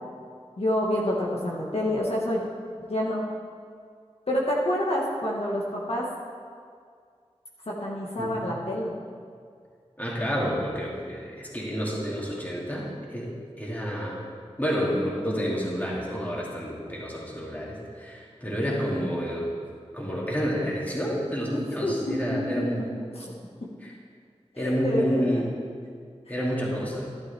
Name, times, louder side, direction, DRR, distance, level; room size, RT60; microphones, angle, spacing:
voice 1, 0.6-2.4 2.9-3.2 4.3-6.1 7.7-8.9 16.4-16.5 21.5-22.7 24.5-25.3 26.3-26.4, left 1 dB, 65° left, -4 dB, 1.6 m, -28 dB
voice 2, 10.0-13.3 13.6-14.2 14.6-19.5 19.9-22.9 23.8-23.9 24.6-25.5 26.3-27.1, equal, 15° left, -5 dB, 2.7 m, -29 dB
12.0 x 11.5 x 3.5 m, 2.1 s
wide cardioid pair, 65°, 11 cm